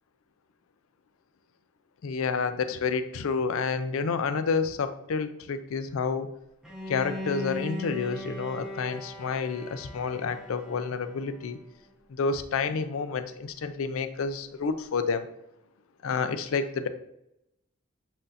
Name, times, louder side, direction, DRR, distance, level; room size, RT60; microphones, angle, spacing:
voice 1, 2.0-6.3 6.9-11.6 12.2-15.2 16.0-16.9, left 5 dB, 80° left, 10 dB, 0.4 m, -29 dB
Bowed string instrument, 6.6-11.6, equal, 5° right, 0.6 m, -39 dB
7.5 x 2.6 x 2.7 m, 0.83 s
head